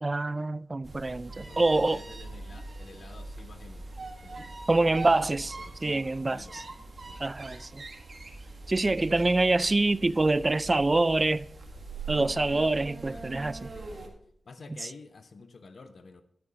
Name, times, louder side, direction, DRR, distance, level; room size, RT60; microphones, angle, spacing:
voice 1, 0.0-2.0 4.7-5.5 5.8-6.6 7.2-7.8 8.7-11.4 12.1-13.7, right 2 dB, 35° right, 0.3 m, -25 dB
sound 1, 0.8-14.1, right 3 dB, 50° right, 1.8 m, -42 dB
voice 2, 1.4-4.5 4.8-6.6 6.9-7.2 13.1-14.1 14.5-16.2, left 4 dB, 65° left, 0.9 m, -51 dB
12.0 x 6.9 x 5.0 m
wide cardioid pair, 70°, 0 cm